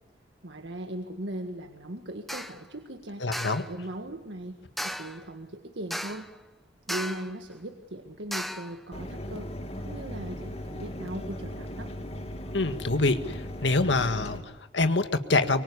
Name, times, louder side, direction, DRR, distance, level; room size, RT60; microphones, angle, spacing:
voice 1, 0.4-3.2 3.7-4.6 4.8-6.3 6.9-9.5 9.8-11.9, right 1 dB, 75° right, 6 dB, 1.8 m, -38 dB
sound 1, 2.3-2.6 3.3-3.7 4.8-5.2 5.9-6.3 6.9-7.3 8.3-8.7, equal, ahead, 1.1 m, -35 dB
voice 2, 3.2-3.6 12.5-15.6, left 2 dB, 80° left, 9 dB, 1.8 m, -26 dB
Mechanisms, 8.9-14.4, left 1 dB, 35° left, 2.5 m, -37 dB
24.5 x 24.5 x 9.9 m, 1.1 s
head